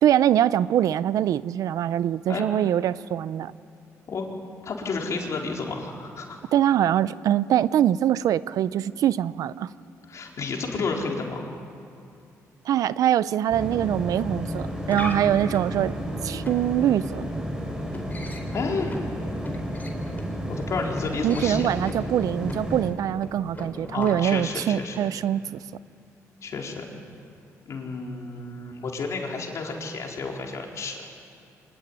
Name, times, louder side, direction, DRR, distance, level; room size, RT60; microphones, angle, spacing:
voice 1, 0.0-3.5 6.5-9.7 12.6-15.9 16.2-17.2 21.2-25.6, right 11 dB, 70° right, 17 dB, 0.6 m, -23 dB
voice 2, 4.6-6.4 10.1-11.5 18.5-18.9 20.5-21.7 23.9-25.0 26.4-26.8 27.6-31.0, left 4 dB, 55° left, 0 dB, 4.5 m, -31 dB
sound 1, 13.5-22.9, equal, 10° right, 5.5 m, -32 dB
sound 2, 14.5-24.5, left 2 dB, 30° left, 4.1 m, -41 dB
25.0 x 20.0 x 9.8 m, 2.5 s
cardioid pair, 85°, 6 cm